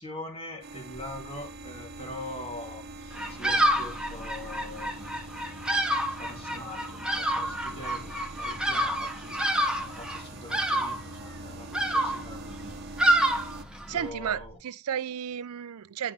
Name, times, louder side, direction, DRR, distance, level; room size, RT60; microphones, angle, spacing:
voice 1, 0.0-5.1 6.2-9.4 9.8-12.7 13.9-14.5, left 1 dB, 25° left, 2.7 m, -43 dB
sound 1, 0.6-13.6, right 3 dB, 50° right, 0.9 m, -44 dB
sound 2, 0.9-14.5, left 1 dB, 50° left, 3.7 m, -49 dB
Bird vocalization bird call bird song, 3.1-14.1, right 1 dB, 5° right, 1.1 m, -28 dB
voice 2, 13.9-16.1, right 8 dB, 80° right, 0.5 m, -33 dB
10.5 x 5.8 x 3.3 m
head